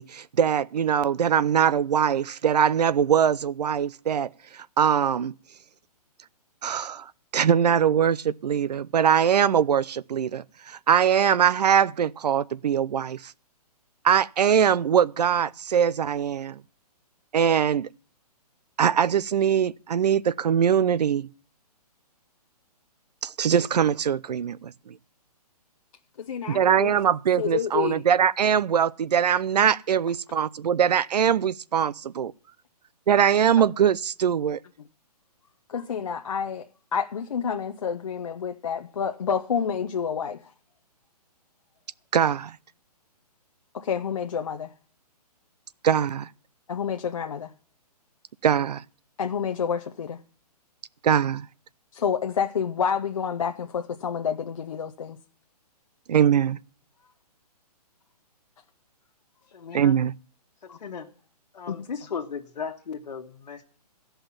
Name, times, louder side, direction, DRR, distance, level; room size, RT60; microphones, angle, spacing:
voice 1, 0.0-5.3 6.6-13.3 14.0-16.6 17.3-17.9 18.8-21.3 23.2-25.0 26.5-32.3 33.1-34.6 42.1-42.6 45.8-46.3 48.4-48.8 51.0-51.5 56.1-56.6 59.7-60.1, right 8 dB, 80° right, 0.6 m, -22 dB
voice 2, 26.2-26.9 27.4-28.0 35.7-36.6 36.9-40.5 43.7-44.7 46.7-47.5 49.2-50.2 51.9-55.2 60.7-60.8 61.7-61.8, left 7 dB, 55° left, 0.7 m, -29 dB
voice 3, 59.5-60.0 60.6-61.1 61.5-63.6, left 6 dB, 85° left, 1.4 m, -36 dB
15.0 x 5.7 x 7.1 m
hypercardioid pair, 180°, 21 cm